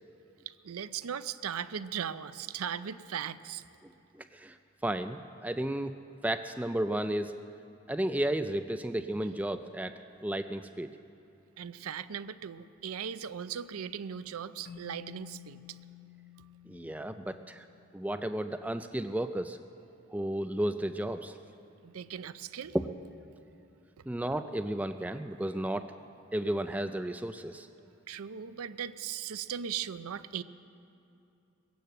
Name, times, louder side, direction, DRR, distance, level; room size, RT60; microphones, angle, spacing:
voice 1, 0.6-3.6 11.6-15.6 21.8-22.8 28.1-30.4, right 8 dB, 80° right, 13 dB, 0.5 m, -38 dB
voice 2, 4.2-4.6 4.8-5.9 6.2-7.3 7.9-10.9 16.7-17.6 17.9-19.6 20.1-21.3 22.7-22.8 24.1-25.9 26.3-27.7, right 1 dB, 5° right, 8 dB, 0.3 m, -33 dB
Keyboard (musical), 14.7-17.9, left 10 dB, 45° left, 0.9 m, -52 dB
19.0 x 9.3 x 7.6 m, 2.7 s
head